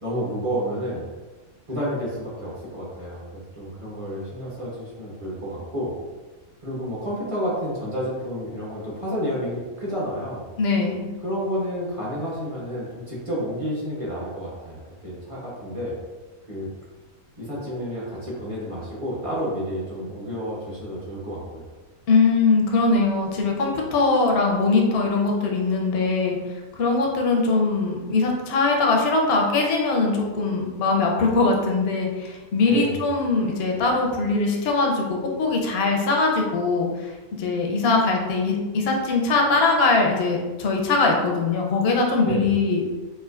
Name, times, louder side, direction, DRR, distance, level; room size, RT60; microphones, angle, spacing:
voice 1, 0.0-1.1 1.7-5.9 6.6-10.4 11.2-16.0 16.5-16.7 17.4-21.7 32.6-33.0 42.2-42.5, equal, 30° right, -7 dB, 0.7 m, -30 dB
voice 2, 10.6-11.0 22.1-26.4 26.8-42.8, left 3 dB, 60° left, 0 dB, 0.6 m, -21 dB
4.4 x 2.4 x 2.4 m, 1.2 s
omnidirectional pair, 1.7 m